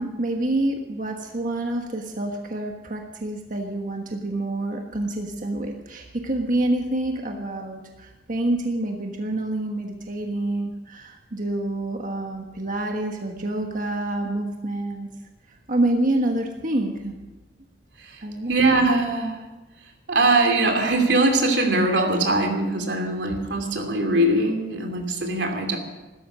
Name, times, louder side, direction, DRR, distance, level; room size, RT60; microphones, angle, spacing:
voice 1, 0.0-15.1 15.5-17.2 18.2-18.5, right 1 dB, 50° right, 2 dB, 1.5 m, -27 dB
voice 2, 18.5-19.4 20.1-25.8, right 2 dB, 85° right, 3 dB, 2.8 m, -21 dB
16.0 x 13.5 x 6.3 m, 1.1 s
head